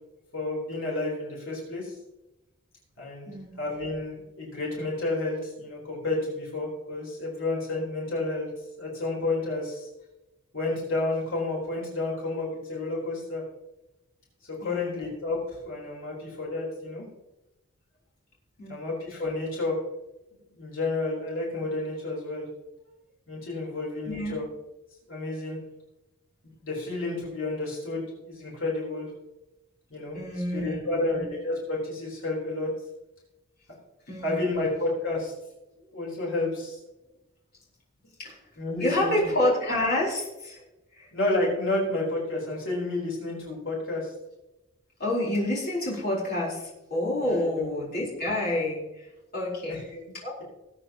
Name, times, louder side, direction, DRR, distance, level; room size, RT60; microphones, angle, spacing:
voice 1, 0.3-2.0 3.0-3.3 3.6-8.5 8.8-9.9 10.5-13.4 14.5-17.0 18.7-19.8 20.5-22.5 23.3-24.5 25.1-25.6 26.6-29.1 29.9-30.2 30.5-32.7 34.2-35.3 35.9-36.8 38.6-39.3 41.1-44.1 47.2-47.7 49.7-50.0, left 2 dB, 65° left, -4 dB, 4.1 m, -30 dB
voice 2, 3.3-3.6 14.6-15.0 18.6-18.9 24.0-24.4 30.1-31.2 34.1-34.6 38.2-38.4 38.8-40.6 40.9-41.1 45.0-49.8 50.2-50.4, left 1 dB, 45° left, -5 dB, 4.2 m, -28 dB
19.5 x 9.0 x 3.0 m, 0.96 s
head